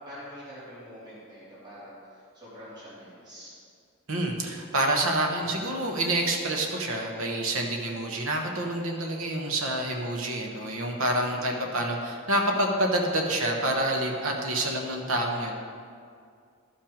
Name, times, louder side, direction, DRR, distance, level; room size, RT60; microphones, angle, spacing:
voice 1, 0.0-3.5 11.1-11.7, equal, 20° right, -10 dB, 2.8 m, -46 dB
voice 2, 4.1-15.6, right 1 dB, 70° right, 2 dB, 1.2 m, -27 dB
11.5 x 5.8 x 5.2 m, 2.2 s
head